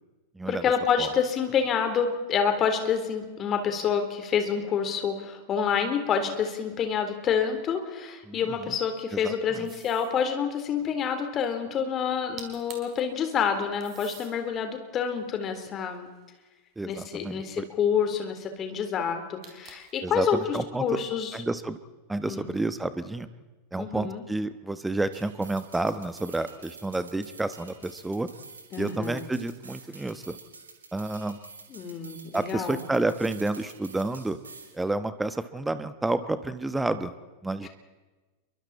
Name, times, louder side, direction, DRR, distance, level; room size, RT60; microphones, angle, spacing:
voice 1, 0.5-16.1 16.9-21.3 22.3-22.5 23.8-24.2 28.7-29.3 31.7-32.8 37.6-37.7, left 7 dB, 30° left, 6 dB, 3.9 m, -28 dB
voice 2, 8.3-8.8 9.1-9.7 16.8-17.7 20.0-20.8 21.3-21.8 22.1-23.3 23.7-28.3 28.8-30.4 30.9-31.4 32.3-34.4 34.7-37.1 37.4-37.7, right 2 dB, 5° right, 12 dB, 1.2 m, -30 dB
sound 1, 9.7-10.2 12.1-12.2 12.4-13.0 13.8-14.3 15.0-16.5 19.4-20.0, right 8 dB, 30° right, 4.7 m, -47 dB
sound 2, 25.1-34.8, right 4 dB, 75° right, 4.0 m, -49 dB
29.0 x 24.0 x 4.3 m, 1.2 s
figure-of-eight pair, 90°, 0 cm